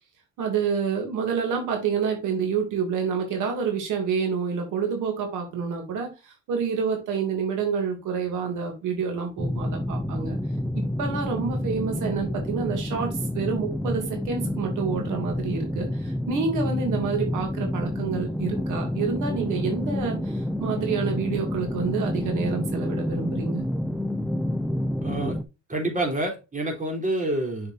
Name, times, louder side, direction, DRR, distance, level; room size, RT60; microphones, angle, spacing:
voice 1, 0.4-10.4 10.7-23.6, right 6 dB, 90° right, 2.8 m, -28 dB
sound 1, 9.4-25.4, left 1 dB, ahead, 0.7 m, -29 dB
voice 2, 25.0-25.4 25.7-27.7, right 1 dB, 25° right, 4.0 m, -27 dB
7.0 x 6.6 x 2.7 m
cardioid pair, 90°, 30 cm